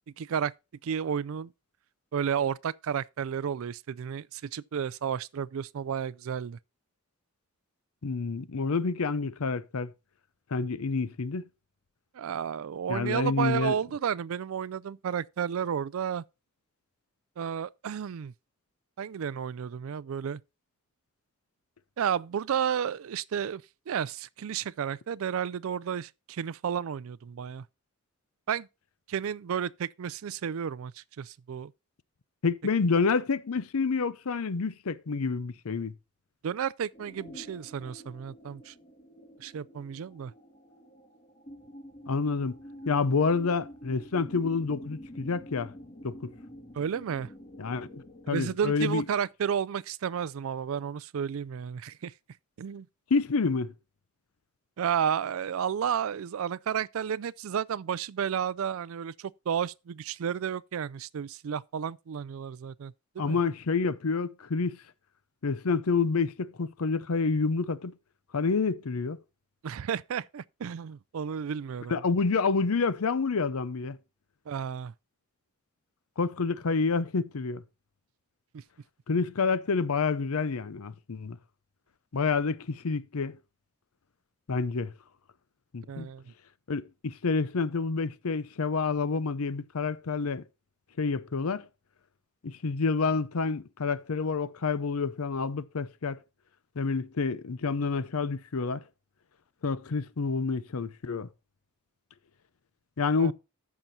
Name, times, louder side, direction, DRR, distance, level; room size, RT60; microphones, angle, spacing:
voice 1, 0.2-0.5 0.8-1.5 2.1-6.6 12.1-16.2 17.4-18.3 19.0-20.4 22.0-27.6 28.5-28.7 29.1-31.7 36.4-38.7 39.4-40.3 46.8-47.3 48.3-52.1 52.6-52.9 54.8-63.4 69.6-72.0 74.5-74.9 78.5-78.6 85.9-86.2 103.2-103.3, right 8 dB, 75° right, 0.4 m, -32 dB
voice 2, 8.0-9.9 10.5-11.4 12.9-13.8 32.4-35.9 42.1-42.6 42.9-45.7 46.0-46.3 47.6-49.0 53.1-53.7 63.2-64.8 65.4-67.9 68.3-69.2 71.9-74.0 76.2-77.6 79.1-81.4 82.1-83.4 84.5-84.9 85.7-86.1 86.7-90.4 91.0-91.6 92.4-96.2 96.8-98.8 99.6-101.3 103.0-103.3, left 4 dB, 80° left, 0.6 m, -28 dB
sound 1, 36.9-48.3, equal, 30° left, 2.1 m, -47 dB
14.5 x 6.1 x 2.7 m
head